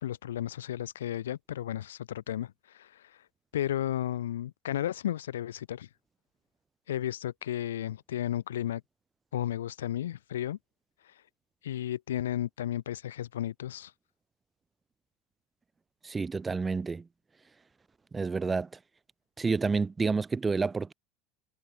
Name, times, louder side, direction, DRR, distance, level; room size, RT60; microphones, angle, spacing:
voice 1, 0.0-3.2 3.5-5.9 6.9-8.8 9.3-10.6 11.0-11.1 11.6-13.9, left 11 dB, 85° left, 0.5 m, -33 dB
voice 2, 16.0-17.1 18.1-18.7 19.4-20.9, right 4 dB, 20° right, 0.7 m, -29 dB
hypercardioid pair, 80°, 0 cm